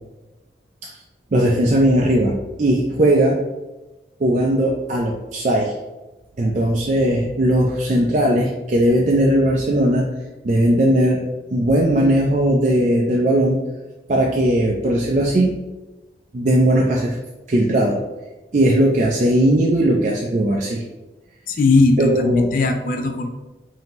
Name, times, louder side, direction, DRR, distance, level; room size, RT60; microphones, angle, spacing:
voice 1, 1.3-3.4 4.2-5.7 6.4-10.1 10.4-13.6 14.1-15.5 16.3-17.2 17.5-18.1 18.5-20.8 22.0-22.5, right 1 dB, 40° right, -1 dB, 0.4 m, -18 dB
voice 2, 21.5-23.3, left 3 dB, 50° left, 4 dB, 0.4 m, -18 dB
5.3 x 2.8 x 2.9 m, 1.1 s
head